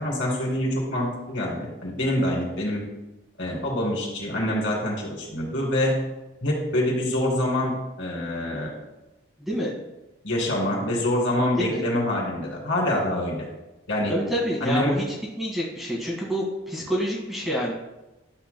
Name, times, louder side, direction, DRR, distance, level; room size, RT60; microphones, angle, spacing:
voice 1, 0.0-2.8 3.4-6.0 6.4-8.7 10.2-13.5 13.9-14.1 14.6-15.0, left 1 dB, 65° left, -3 dB, 2.9 m, -25 dB
voice 2, 9.4-9.7 11.6-11.8 14.1-15.0 15.4-17.7, equal, ahead, -5 dB, 1.6 m, -27 dB
12.0 x 7.4 x 2.2 m, 1.0 s
head